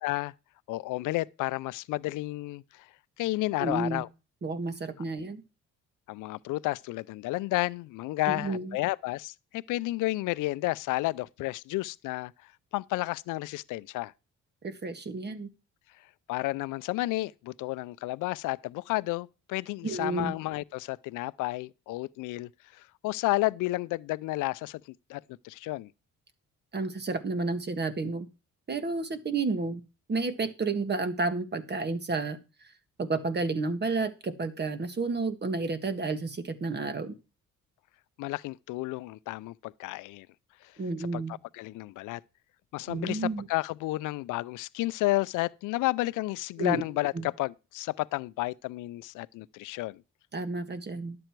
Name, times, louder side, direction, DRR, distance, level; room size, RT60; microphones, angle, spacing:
voice 1, 0.0-0.3 0.7-2.9 3.2-4.1 6.1-14.1 16.3-24.8 25.1-25.9 38.2-40.3 40.6-40.7 41.1-41.2 41.5-42.2 42.7-50.0, left 19 dB, 90° left, 0.5 m, -32 dB
voice 2, 3.6-4.0 4.4-5.4 8.3-8.8 14.6-15.5 19.8-20.3 26.7-28.3 28.7-29.8 30.1-32.4 33.0-37.1 40.8-41.4 42.9-43.5 46.6-46.8 47.1-47.3 50.3-51.2, right 3 dB, 35° right, 1.6 m, -31 dB
11.5 x 7.8 x 4.5 m
cardioid pair, 90°, 30 cm